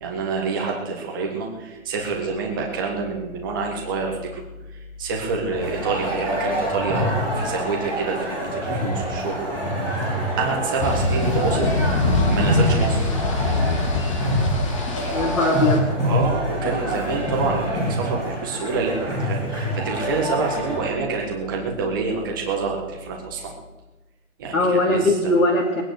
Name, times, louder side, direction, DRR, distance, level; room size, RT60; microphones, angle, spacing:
voice 1, 0.0-4.4 4.7-9.6 10.0-11.7 12.3-13.1 15.0-15.4 16.0-23.5 24.4-25.3, right 4 dB, 15° right, 0 dB, 1.7 m, -27 dB
sound 1, 5.5-20.8, equal, 5° left, 3.5 m, -26 dB
sound 2, 10.8-15.8, left 3 dB, 20° left, 1.7 m, -24 dB
voice 2, 15.1-15.9 24.5-25.8, left 2 dB, 75° left, -3 dB, 3.1 m, -20 dB
21.0 x 10.0 x 6.6 m, 1.1 s
hypercardioid pair, 170°, 43 cm